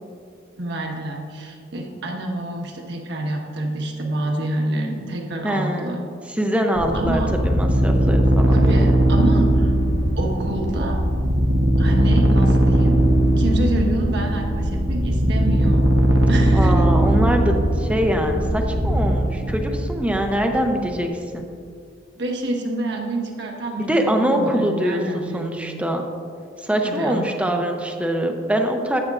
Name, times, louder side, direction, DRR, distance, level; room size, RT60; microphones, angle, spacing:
voice 1, 0.6-6.0 6.9-7.3 8.5-9.7 10.2-11.0 11.8-13.0 13.4-15.9 16.3-16.8 22.2-25.8 26.8-27.2, right 1 dB, 65° right, 0 dB, 1.3 m, -27 dB
voice 2, 5.4-8.6 16.5-21.5 23.8-26.0 26.6-29.0, equal, 5° right, 3 dB, 0.6 m, -23 dB
sound 1, 6.8-21.0, right 1 dB, 80° right, 0.9 m, -19 dB
11.0 x 8.6 x 2.5 m, 2.3 s
head